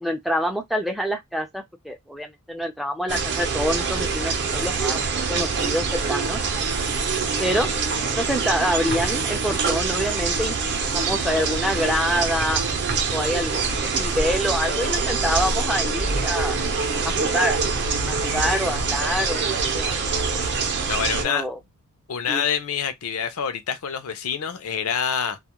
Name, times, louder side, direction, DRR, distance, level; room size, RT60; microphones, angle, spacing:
voice 1, 0.0-5.0 5.3-6.4 7.4-7.7 8.1-10.6 10.9-12.6 13.1-16.6 17.0-17.6 18.1-19.4 19.7-20.0 21.1-21.6 22.3-22.4, equal, ahead, 0.3 m, -26 dB
sound 1, 3.1-21.2, right 4 dB, 50° right, 0.6 m, -25 dB
sound 2, 17.8-21.6, left 1 dB, 85° right, 0.7 m, -39 dB
voice 2, 20.8-21.5 22.1-25.4, left 7 dB, 70° left, 0.5 m, -26 dB
2.3 x 2.1 x 2.9 m
head